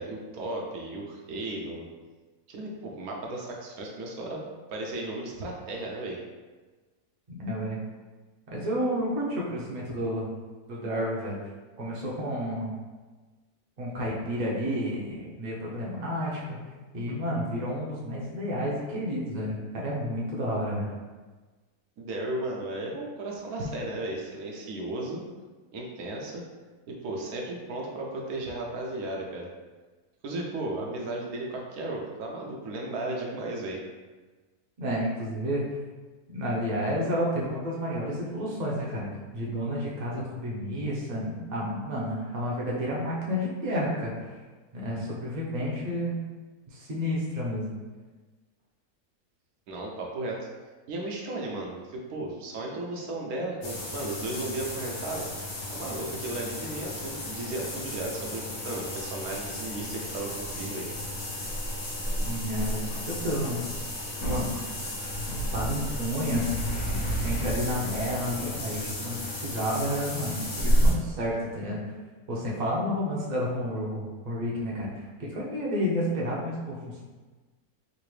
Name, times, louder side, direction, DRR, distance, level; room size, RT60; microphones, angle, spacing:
voice 1, 0.0-1.8 2.5-4.4 4.7-6.2 22.0-25.2 25.7-26.4 26.9-29.5 30.2-33.8 49.7-50.5 50.9-55.3 55.7-60.9, right 2 dB, 75° right, -1 dB, 1.1 m, -35 dB
voice 2, 7.3-7.8 8.5-10.3 10.7-11.4 11.8-12.7 13.8-16.6 16.9-20.9 34.8-35.8 36.3-39.1 39.3-44.3 44.7-46.2 46.7-47.7 62.2-63.6 64.3-64.5 65.3-66.5 66.9-71.8 72.3-77.0, equal, 40° right, -4 dB, 0.6 m, -31 dB
sound 1, 53.6-70.9, equal, 85° left, 1.6 m, -31 dB
3.8 x 2.5 x 3.1 m, 1.3 s
omnidirectional pair, 1.6 m